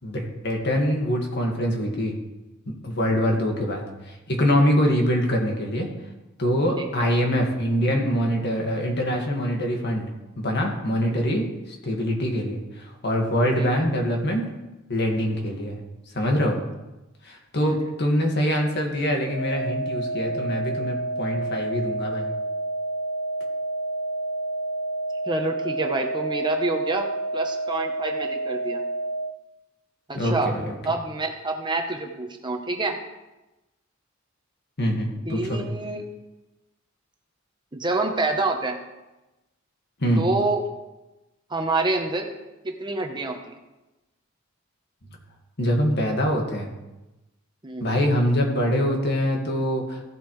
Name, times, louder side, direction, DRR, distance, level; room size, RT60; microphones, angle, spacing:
voice 1, 0.0-2.2 2.7-5.9 6.4-10.1 10.4-14.5 14.9-15.8 16.1-16.6 17.2-22.3 30.1-30.8 34.8-35.7 40.0-40.3 45.6-46.7 47.8-50.0, equal, 55° left, 1 dB, 1.9 m, -24 dB
voice 2, 6.8-7.1 11.1-11.4 13.6-13.8 17.6-17.9 25.3-27.0 27.3-28.8 30.1-30.5 30.8-33.0 35.3-36.0 37.7-38.8 40.2-40.6 41.5-42.3 42.6-43.6 47.6-47.9, right 3 dB, 20° right, 3 dB, 0.9 m, -27 dB
sound 1, 19.3-29.3, right 2 dB, 75° left, 0.7 m, -29 dB
15.0 x 8.1 x 3.2 m, 1.0 s
head